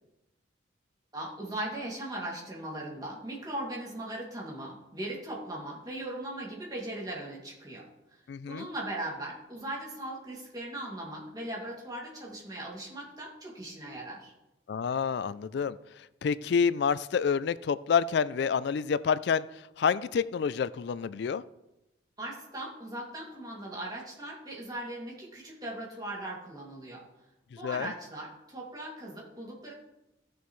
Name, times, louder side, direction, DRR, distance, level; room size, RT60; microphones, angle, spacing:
voice 1, 1.1-8.2 8.5-14.3 22.2-27.0 27.6-29.7, right 1 dB, 20° right, 2.4 m, -39 dB
voice 2, 8.3-8.7 14.7-15.8 16.2-19.4 19.8-21.4 27.6-27.9, left 6 dB, 60° left, 0.3 m, -28 dB
14.5 x 6.9 x 3.1 m
head